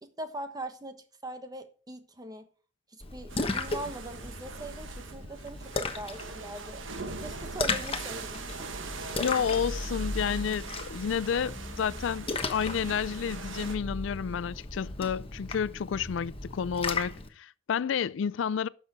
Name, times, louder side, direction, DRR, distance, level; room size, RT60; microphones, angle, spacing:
voice 1, 0.0-2.5 2.9-9.2, right 1 dB, 20° right, 1.3 m, -42 dB
Splash splatter, 3.0-17.3, left 3 dB, 30° left, 1.2 m, -36 dB
sound 1, 3.3-13.8, right 4 dB, 80° right, 1.4 m, -42 dB
voice 2, 9.2-18.7, left 7 dB, 70° left, 0.4 m, -30 dB
11.5 x 6.4 x 4.7 m
head